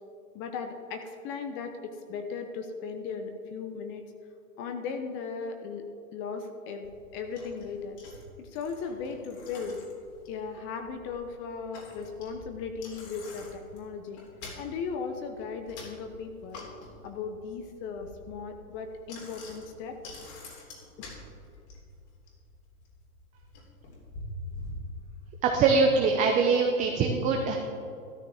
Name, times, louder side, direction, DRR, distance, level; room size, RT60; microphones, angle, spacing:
voice 1, 0.3-4.0 4.6-8.0 8.4-9.8 10.3-14.2 14.6-16.7 17.0-20.0, left 5 dB, 25° left, 6 dB, 0.8 m, -37 dB
Bicycle, 6.8-25.7, left 2 dB, 50° left, 3.4 m, -47 dB
voice 2, 25.4-27.6, right 4 dB, 20° right, 2 dB, 0.7 m, -23 dB
13.0 x 12.0 x 3.6 m, 2.4 s
hypercardioid pair, 135°, 43 cm